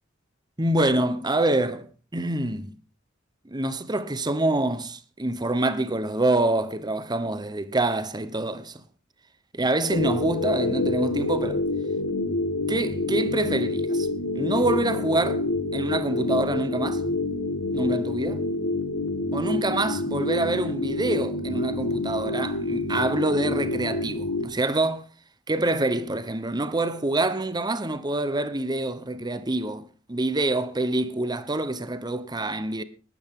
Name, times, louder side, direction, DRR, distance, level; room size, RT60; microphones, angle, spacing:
voice 1, 0.6-1.9 2.1-2.7 3.4-8.8 9.5-11.6 12.7-14.1 14.3-15.4 15.7-17.0 17.7-18.4 19.3-25.1 25.5-32.8, right 2 dB, 20° right, 0.9 m, -26 dB
sound 1, 9.9-24.5, left 2 dB, 80° left, 1.5 m, -27 dB
19.0 x 12.5 x 3.7 m
head